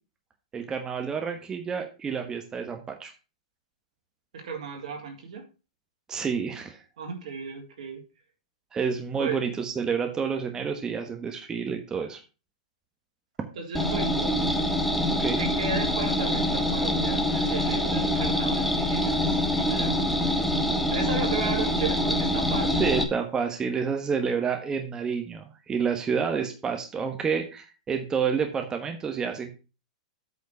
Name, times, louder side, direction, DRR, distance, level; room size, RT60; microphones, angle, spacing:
voice 1, 0.5-3.1 6.1-6.8 8.7-12.2 15.1-15.4 22.8-29.5, right 6 dB, 15° right, 5 dB, 1.2 m, -29 dB
voice 2, 4.3-5.4 7.0-8.0 9.2-9.4 13.6-14.4 15.4-20.0 20.3-20.5 20.9-22.9, right 4 dB, 70° right, 2 dB, 3.6 m, -35 dB
sound 1, 13.7-23.0, left 1 dB, ahead, 1.4 m, -25 dB
8.4 x 4.4 x 6.8 m, 0.32 s
hypercardioid pair, 125°, 4 cm